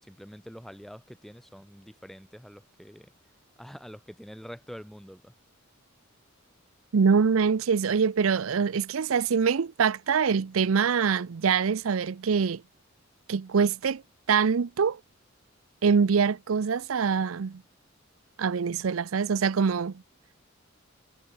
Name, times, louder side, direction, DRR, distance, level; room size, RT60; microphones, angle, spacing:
voice 1, 0.0-3.1 3.6-5.3, equal, ahead, 5.4 m, -46 dB
voice 2, 6.9-12.6 13.3-14.0 14.3-15.0 15.8-17.6 18.4-20.0, right 6 dB, 85° right, 0.5 m, -24 dB
head